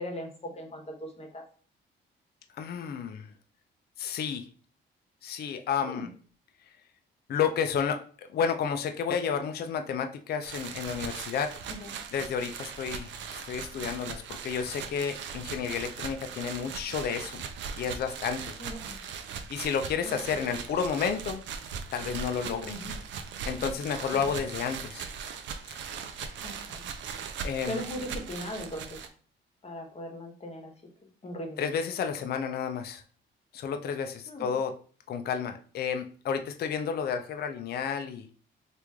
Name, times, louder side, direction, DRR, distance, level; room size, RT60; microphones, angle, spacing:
voice 1, 0.0-1.4 5.8-6.1 11.7-11.9 18.6-19.0 20.0-20.4 22.6-22.9 24.1-24.2 26.4-26.9 27.6-29.1 29.6-30.7 31.2-31.6 34.3-34.6, left 1 dB, 30° left, 3 dB, 1.0 m, -39 dB
voice 2, 2.6-3.3 4.0-4.5 5.2-6.1 7.3-11.5 12.1-17.4 17.8-18.5 19.5-21.4 21.9-22.7 23.5-25.1 25.6-25.8 27.4-27.8 31.6-33.0 33.5-34.7 35.1-38.3, left 7 dB, 55° left, 6 dB, 0.4 m, -31 dB
sound 1, 10.4-29.1, right 6 dB, 70° right, 0.5 m, -39 dB
3.0 x 2.5 x 3.5 m, 0.42 s
cardioid pair, 90°, 20 cm